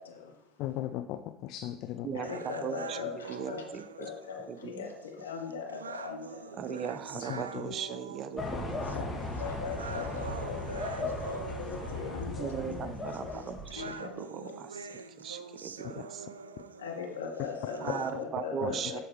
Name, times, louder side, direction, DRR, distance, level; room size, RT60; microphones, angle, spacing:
voice 1, 0.0-0.5 2.1-6.9 8.9-13.4 13.7-14.5 16.8-19.0, left 6 dB, 80° left, 2 dB, 1.2 m, -40 dB
voice 2, 0.6-2.1 7.3-7.7 8.9-9.0 18.6-18.7, left 13 dB, 55° left, 8 dB, 0.4 m, -37 dB
voice 3, 2.0-4.1 4.5-4.9 6.6-8.8 12.3-14.9 15.2-16.3 17.8-19.0, right 8 dB, 45° right, 12 dB, 0.6 m, -38 dB
sound 1, 2.2-18.2, right 5 dB, 85° right, 0.3 m, -45 dB
sound 2, 8.4-13.9, left 2 dB, 15° left, 1.9 m, -37 dB
12.5 x 4.6 x 3.2 m, 0.85 s
hypercardioid pair, 70°, 0 cm